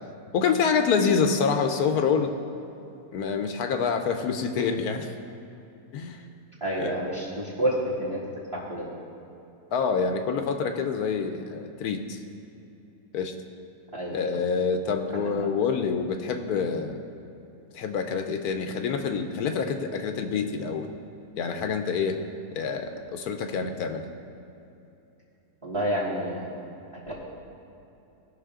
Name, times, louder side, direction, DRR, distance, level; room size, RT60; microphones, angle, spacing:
voice 1, 0.3-2.3 3.1-5.1 5.9-6.2 6.8-6.9 9.7-12.2 13.1-13.3 14.1-17.0 17.7-20.9 21.4-22.2 22.5-24.0, left 5 dB, 75° left, 6 dB, 1.2 m, -26 dB
voice 2, 6.6-8.2 8.5-8.9 13.9-14.2 15.1-15.2 25.6-26.5, right 1 dB, 20° right, -7 dB, 1.7 m, -28 dB
18.0 x 6.0 x 3.7 m, 2.8 s
omnidirectional pair, 1.7 m